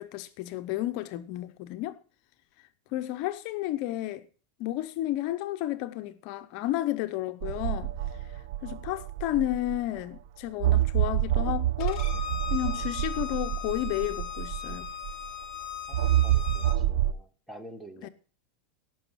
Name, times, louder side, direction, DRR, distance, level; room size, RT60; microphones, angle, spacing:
voice 1, 0.0-2.0 2.9-4.3 4.6-7.9 8.6-12.0 12.5-14.9 18.0-18.1, left 15 dB, 55° left, 0.8 m, -32 dB
sound 1, 7.4-10.0 10.6-15.3 15.9-17.1, right 13 dB, 65° right, 0.5 m, -28 dB
Bowed string instrument, 11.8-16.8, left 9 dB, 35° left, 2.4 m, -38 dB
voice 2, 15.9-18.1, right 1 dB, ahead, 1.4 m, -48 dB
16.5 x 6.1 x 5.7 m
supercardioid pair, 140°, 0 cm